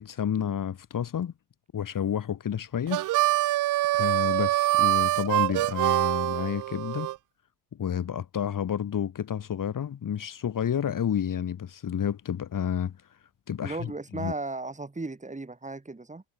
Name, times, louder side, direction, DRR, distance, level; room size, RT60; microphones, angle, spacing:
voice 1, 0.0-1.3 1.7-3.0 3.9-7.1 7.8-12.9 13.5-14.3, left 9 dB, 40° left, 3.1 m, -30 dB
Harmonica, 2.9-7.2, right 16 dB, 45° right, 0.5 m, -25 dB
voice 2, 13.6-16.2, right 3 dB, 15° right, 6.7 m, -35 dB
supercardioid pair, 85°, 47 cm